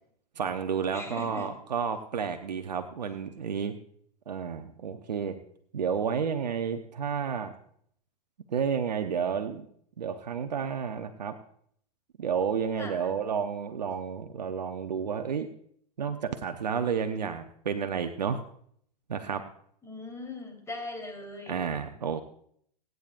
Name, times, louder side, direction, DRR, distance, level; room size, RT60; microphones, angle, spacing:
voice 1, 0.4-3.7 4.3-5.3 5.7-7.5 8.5-9.7 10.0-11.3 12.2-15.5 16.0-18.4 19.1-19.4 21.5-22.2, right 7 dB, 85° right, 7 dB, 0.9 m, -31 dB
voice 2, 0.9-1.5 12.8-13.1 19.8-21.6, left 2 dB, 15° left, 2 dB, 3.7 m, -40 dB
24.0 x 9.3 x 2.5 m, 0.65 s
hypercardioid pair, 100°, 21 cm